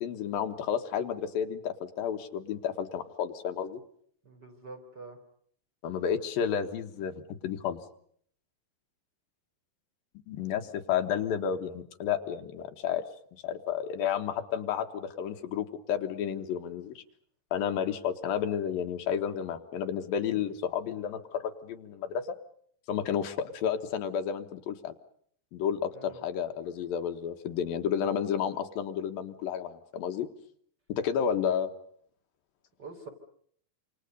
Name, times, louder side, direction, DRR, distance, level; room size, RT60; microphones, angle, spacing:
voice 1, 0.0-3.8 5.8-7.8 10.3-13.0 13.4-17.0 17.5-22.3 22.9-24.9 25.5-30.3 30.9-31.7, left 8 dB, 80° left, 6 dB, 3.1 m, -31 dB
voice 2, 4.2-5.2 25.9-26.2 32.8-33.1, right 3 dB, 30° right, 4 dB, 4.1 m, -45 dB
27.5 x 27.0 x 5.4 m, 0.63 s
omnidirectional pair, 4.1 m